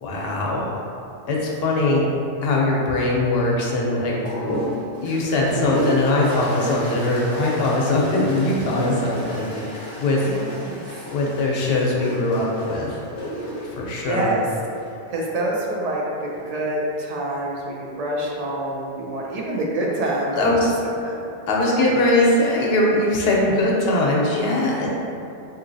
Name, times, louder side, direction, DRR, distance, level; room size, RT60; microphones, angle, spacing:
voice 1, 0.0-0.7 1.3-2.1 2.4-4.2 4.6-4.7 5.0-10.3 11.1-13.0 13.6-14.3 20.3-20.7 21.5-24.9, left 2 dB, 75° left, -3 dB, 0.8 m, -21 dB
sound 1, 4.2-14.9 16.1-16.7, left 1 dB, 40° left, 0.7 m, -32 dB
voice 2, 10.3-10.8 14.1-14.4 15.1-20.5 20.8-21.3, right 1 dB, 55° right, -3 dB, 0.5 m, -26 dB
3.7 x 2.7 x 2.6 m, 2.7 s
omnidirectional pair, 1.1 m